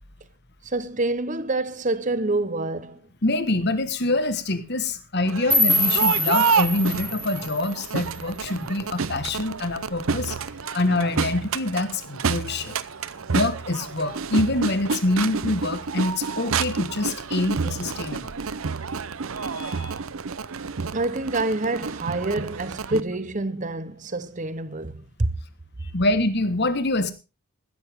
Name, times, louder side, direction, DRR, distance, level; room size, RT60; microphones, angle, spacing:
voice 1, 0.6-3.0 20.9-25.4, right 2 dB, 35° right, 0.9 m, -27 dB
voice 2, 3.2-10.4 10.7-12.8 13.3-18.3 19.3-19.9 25.8-27.1, left 2 dB, 50° left, 1.5 m, -25 dB
Crowd, 5.2-23.0, right 5 dB, 70° right, 0.7 m, -29 dB
sound 1, 5.5-8.5, left 1 dB, ahead, 3.8 m, -25 dB
16.0 x 12.5 x 3.6 m
head